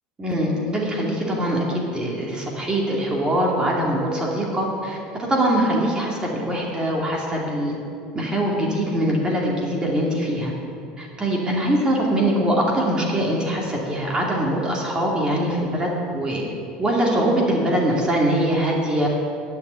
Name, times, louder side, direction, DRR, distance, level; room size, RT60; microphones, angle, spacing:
voice 1, 0.2-7.8 8.1-10.5 11.0-16.4 16.8-19.1, right 1 dB, 25° right, -2 dB, 2.5 m, -22 dB
11.5 x 6.9 x 9.0 m, 2.6 s
supercardioid pair, 100°, 4 cm